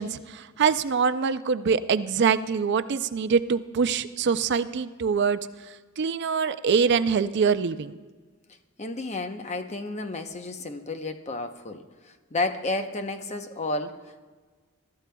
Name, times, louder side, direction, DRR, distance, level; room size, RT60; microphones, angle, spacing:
voice 1, 0.0-5.4 6.0-7.9, right 6 dB, 55° right, 12 dB, 0.4 m, -24 dB
voice 2, 8.8-14.3, left 2 dB, 35° left, 7 dB, 0.8 m, -32 dB
23.0 x 13.5 x 2.3 m, 1.4 s
head